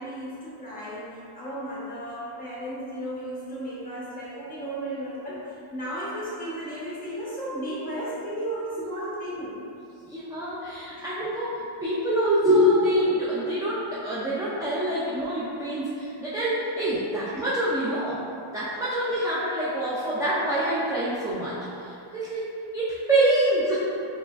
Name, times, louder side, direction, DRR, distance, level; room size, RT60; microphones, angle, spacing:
voice 1, 0.0-9.7 10.5-10.6 11.0-11.1, right 1 dB, 15° left, -8 dB, 1.0 m, -34 dB
voice 2, 10.1-18.2 18.5-21.6 21.8-22.4 22.7-23.8, right 1 dB, 10° right, -10 dB, 0.3 m, -25 dB
4.8 x 3.0 x 2.4 m, 2.6 s
wide cardioid pair, 160°, 50 cm